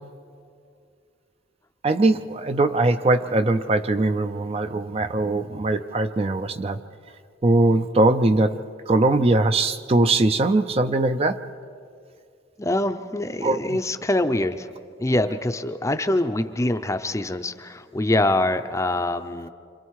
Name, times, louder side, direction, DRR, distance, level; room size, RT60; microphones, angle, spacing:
voice 1, 1.8-6.8 7.4-11.4 13.4-13.8, right 2 dB, 30° right, 9 dB, 0.5 m, -21 dB
voice 2, 12.6-14.7 15.0-19.5, left 1 dB, 15° left, 9 dB, 0.6 m, -24 dB
28.0 x 26.0 x 4.7 m, 2.4 s
head